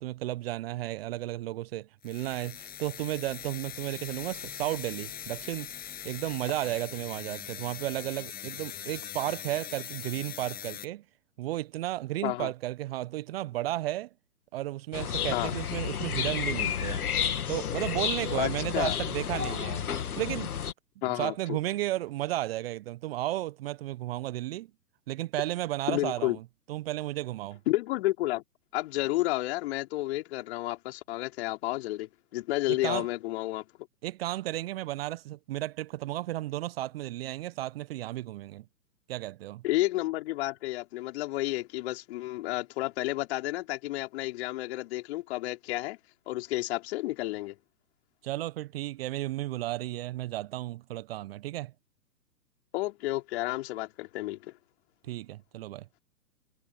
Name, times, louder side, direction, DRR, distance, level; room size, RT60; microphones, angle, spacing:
voice 1, 0.0-5.7 6.0-11.0 11.4-14.1 14.5-17.1 17.5-19.9 20.2-20.5 21.0-24.7 25.1-26.4 26.7-27.6 32.8-33.1 34.0-38.6 39.1-39.6 48.2-51.7 55.1-55.8, right 15 dB, 35° right, 1.4 m, -33 dB
sound 1, 2.0-10.9, left 10 dB, 20° left, 7.6 m, -41 dB
Light rain, 14.9-20.7, left 8 dB, 60° left, 2.7 m, -31 dB
voice 2, 18.3-19.0 21.0-21.6 25.9-26.4 27.7-28.4 28.7-33.7 39.6-46.0 46.3-47.6 52.7-54.5, left 18 dB, 40° left, 5.2 m, -31 dB
figure-of-eight pair, 120°, 50 cm